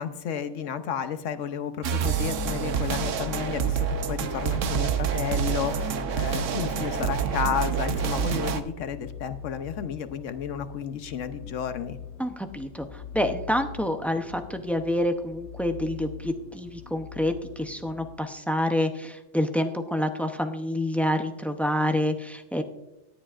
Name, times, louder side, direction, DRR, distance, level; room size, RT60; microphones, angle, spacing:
voice 1, 0.0-12.0, left 8 dB, 90° left, 10 dB, 1.1 m, -32 dB
sound 1, 1.8-8.6, right 7 dB, 90° right, 1.1 m, -27 dB
sound 2, 3.5-18.2, left 9 dB, 70° left, 0.9 m, -43 dB
voice 2, 12.2-22.6, left 1 dB, ahead, 6 dB, 0.4 m, -28 dB
17.5 x 10.0 x 2.5 m, 0.96 s
omnidirectional pair, 1.2 m